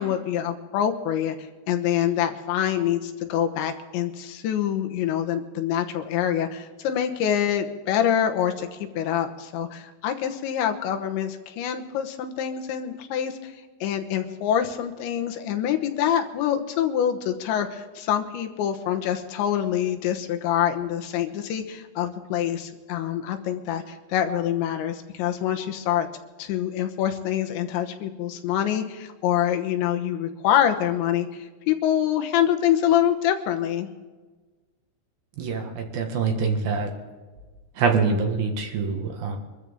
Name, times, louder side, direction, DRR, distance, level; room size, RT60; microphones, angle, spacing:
voice 1, 0.0-1.4 1.7-13.5 13.8-26.1 26.4-33.9, left 10 dB, 90° left, 5 dB, 3.5 m, -25 dB
voice 2, 35.3-36.9 37.7-39.4, right 5 dB, 60° right, 3 dB, 3.1 m, -25 dB
25.0 x 13.5 x 3.6 m, 1.3 s
omnidirectional pair, 5.1 m